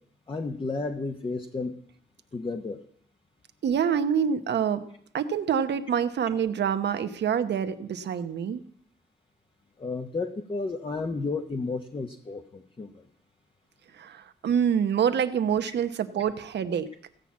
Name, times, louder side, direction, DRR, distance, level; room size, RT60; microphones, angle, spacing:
voice 1, 0.3-1.7 2.3-2.8 9.8-13.0, left 3 dB, 30° left, 4 dB, 0.9 m, -32 dB
voice 2, 3.6-4.8 5.1-8.6 13.9-16.9, right 8 dB, 75° right, 9 dB, 1.0 m, -26 dB
15.5 x 5.8 x 8.4 m, 0.63 s
cardioid pair, 100°, 18 cm